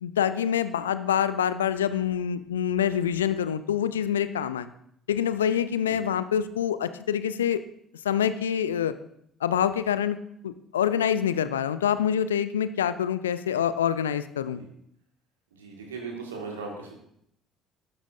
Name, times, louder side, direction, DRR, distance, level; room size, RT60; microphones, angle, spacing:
voice 1, 0.0-4.7 5.1-7.6 8.0-8.9 9.4-10.2 10.4-14.6, left 9 dB, 80° left, 13 dB, 0.4 m, -26 dB
voice 2, 15.6-16.9, right 4 dB, 80° right, 0 dB, 2.0 m, -38 dB
12.0 x 10.5 x 2.7 m, 0.71 s
figure-of-eight pair, 55°, 0 cm